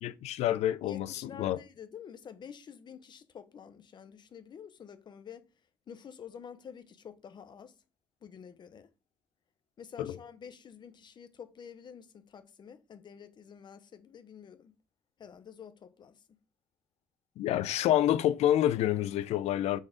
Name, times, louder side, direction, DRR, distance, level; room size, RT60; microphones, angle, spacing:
voice 1, 0.0-1.6 10.0-10.2 17.4-19.8, left 12 dB, 75° left, 0.5 m, -28 dB
voice 2, 0.9-5.5 5.9-7.8 8.2-8.9 9.8-14.7 15.2-16.2, left 7 dB, 45° left, 0.7 m, -49 dB
6.3 x 3.7 x 5.1 m
cardioid pair, 120°, 11 cm